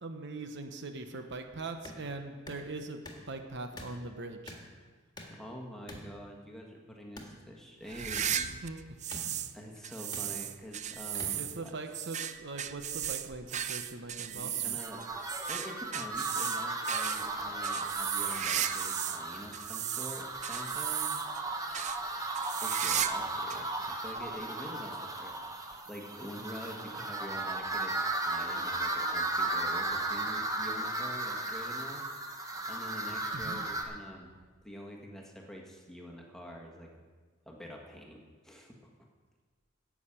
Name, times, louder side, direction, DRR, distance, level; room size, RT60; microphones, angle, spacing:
voice 1, 0.0-4.6 8.6-9.0 9.3-9.4 11.4-14.8 33.3-33.7, right 3 dB, 60° right, 6 dB, 1.0 m, -41 dB
sound 1, 1.8-2.0 2.4-2.6 3.0-3.2 3.8-3.9 4.5-4.6 5.2-5.4 5.9-6.1 7.1-7.3 8.2-8.3 9.1-9.2 10.1-10.3 11.2-11.3, left 1 dB, 20° left, 1.7 m, -45 dB
voice 2, 5.3-8.6 9.5-11.7 14.3-21.2 22.6-25.4 25.9-32.0 32.7-34.3 34.6-36.9 37.4-38.8, equal, 5° left, -1 dB, 1.5 m, -46 dB
sound 2, 7.9-9.5 9.8-19.2 19.5-21.4 21.7-22.0 22.3-23.2 23.5-23.6 24.4-24.5 25.7-25.8, right 10 dB, 35° right, 0.5 m, -35 dB
sound 3, 14.8-33.8, right 2 dB, 20° right, 1.1 m, -35 dB
10.0 x 7.2 x 8.7 m, 1.5 s
head